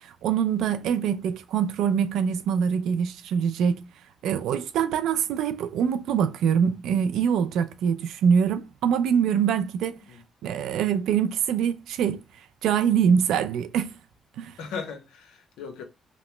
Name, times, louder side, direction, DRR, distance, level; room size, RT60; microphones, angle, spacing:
voice 1, 0.0-3.9 4.2-10.0 10.4-12.2 12.6-14.0 14.4-14.5, right 7 dB, 85° right, 0.3 m, -24 dB
voice 2, 14.6-15.8, left 5 dB, 90° left, 0.7 m, -38 dB
2.8 x 2.0 x 3.2 m
cardioid pair, 90°, 0 cm